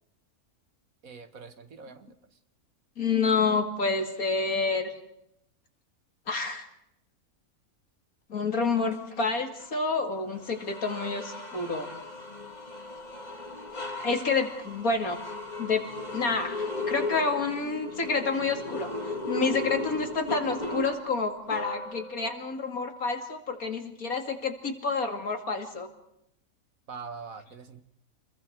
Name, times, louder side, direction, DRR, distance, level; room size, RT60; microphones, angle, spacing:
voice 1, 1.0-2.1 26.9-27.8, right 5 dB, 70° right, 9 dB, 2.0 m, -43 dB
voice 2, 3.0-4.9 6.3-6.6 8.3-11.9 14.0-15.2 15.6-15.8 16.1-18.9 19.3-25.9, left 4 dB, 75° left, 4 dB, 3.0 m, -28 dB
sound 1, 9.6-9.8 10.3-22.3, left 2 dB, 30° left, 2.5 m, -36 dB
29.5 x 22.0 x 4.7 m, 0.79 s
omnidirectional pair, 1.5 m